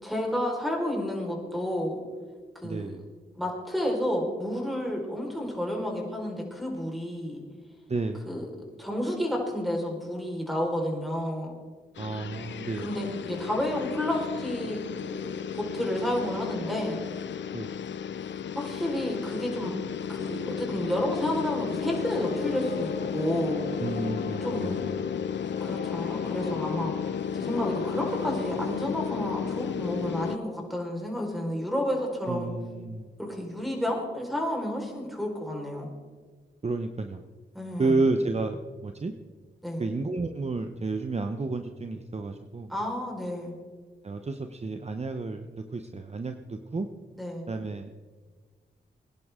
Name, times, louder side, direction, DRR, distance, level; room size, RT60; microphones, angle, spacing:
voice 1, 0.0-2.0 2.5-3.0 3.3-7.4 8.3-8.5 8.8-11.5 12.8-17.0 18.5-19.8 20.1-23.7 24.4-24.8 25.6-26.9 27.3-32.5 33.2-35.9 37.5-37.9 39.6-39.9 42.7-43.5 47.2-47.5, equal, ahead, 0 dB, 4.5 m, -31 dB
voice 2, 2.6-3.0 7.9-8.3 12.0-12.9 17.5-17.7 23.8-25.0 32.3-33.1 36.6-37.2 37.8-39.1 39.8-42.7 44.0-46.9 47.5-47.9, right 3 dB, 35° right, 7 dB, 0.9 m, -31 dB
sound 1, 12.0-30.4, left 8 dB, 70° left, 0.5 m, -33 dB
sound 2, 21.6-30.5, left 5 dB, 55° left, 1.0 m, -40 dB
21.5 x 10.5 x 3.7 m, 1.5 s
cardioid pair, 65°, 19 cm